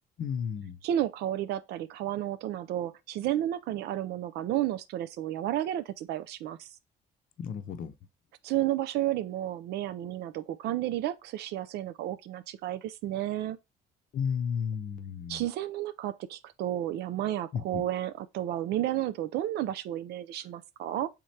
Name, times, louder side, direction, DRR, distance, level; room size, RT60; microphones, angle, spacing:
voice 1, 0.2-0.8 7.4-7.9 14.1-15.4 17.5-17.8, left 7 dB, 55° left, 0.6 m, -33 dB
voice 2, 0.8-6.7 8.4-13.6 15.3-21.1, right 12 dB, 75° right, 0.4 m, -32 dB
3.6 x 3.2 x 4.1 m
cardioid pair, 110°, 17 cm